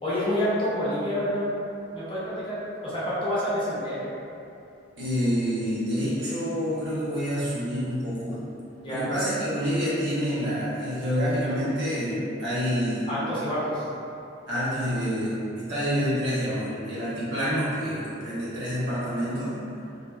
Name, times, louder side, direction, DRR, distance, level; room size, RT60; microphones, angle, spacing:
voice 1, 0.0-1.5 1.9-4.0 8.8-9.1 13.1-13.9, equal, 25° left, -11 dB, 0.7 m, -28 dB
voice 2, 5.0-8.4 8.9-13.1 14.5-19.6, equal, 60° right, -11 dB, 1.0 m, -27 dB
2.8 x 2.6 x 2.2 m, 2.7 s
head